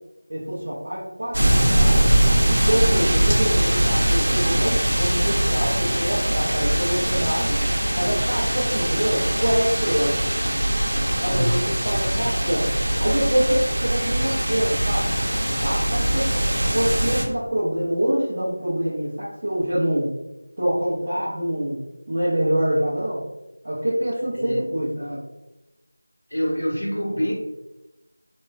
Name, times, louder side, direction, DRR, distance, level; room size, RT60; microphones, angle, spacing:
voice 1, 0.3-2.1 2.7-7.6 7.9-10.2 11.2-11.6 11.8-12.7 13.0-15.1 15.6-16.3 16.7-20.1 20.6-21.8 22.1-23.2 23.6-25.2, equal, 25° right, -10 dB, 0.5 m, -25 dB
sound 1, 1.3-17.3, right 1 dB, 80° right, 0.6 m, -22 dB
voice 2, 11.2-12.0 24.3-24.7 26.3-27.3, equal, 65° left, -3 dB, 0.8 m, -26 dB
3.2 x 2.2 x 2.3 m, 0.97 s
figure-of-eight pair, 180°, 0 cm